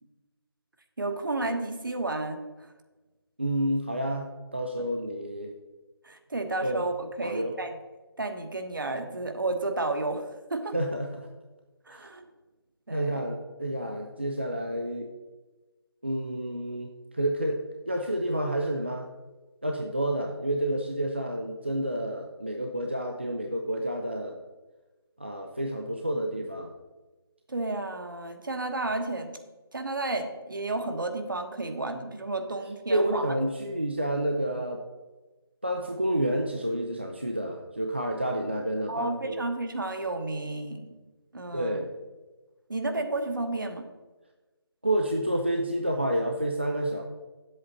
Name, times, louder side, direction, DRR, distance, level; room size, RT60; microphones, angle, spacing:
voice 1, 1.0-2.4 6.0-7.7 8.2-10.7 11.9-12.3 12.9-13.2 27.5-29.4 29.7-33.3 38.9-40.9 41.3-41.8 42.7-43.9, right 2 dB, 55° right, 6 dB, 1.2 m, -32 dB
voice 2, 3.4-5.5 6.6-6.8 7.2-7.5 10.7-11.3 11.9-12.0 12.9-15.1 16.0-19.1 19.6-24.4 25.2-26.7 32.9-34.9 35.6-39.4 41.5-41.9 44.8-47.0, right 1 dB, 25° right, 2 dB, 0.4 m, -29 dB
8.8 x 7.8 x 4.1 m, 1.2 s
figure-of-eight pair, 180°, 14 cm